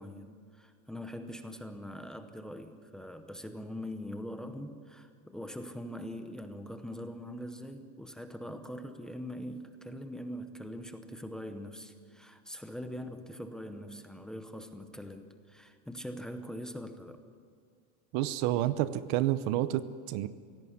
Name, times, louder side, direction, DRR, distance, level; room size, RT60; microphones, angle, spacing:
voice 1, 0.0-17.2, equal, ahead, 7 dB, 0.8 m, -42 dB
voice 2, 18.1-20.3, right 13 dB, 45° right, 14 dB, 0.8 m, -29 dB
23.0 x 17.0 x 9.6 m, 2.1 s
supercardioid pair, 175°, 30 cm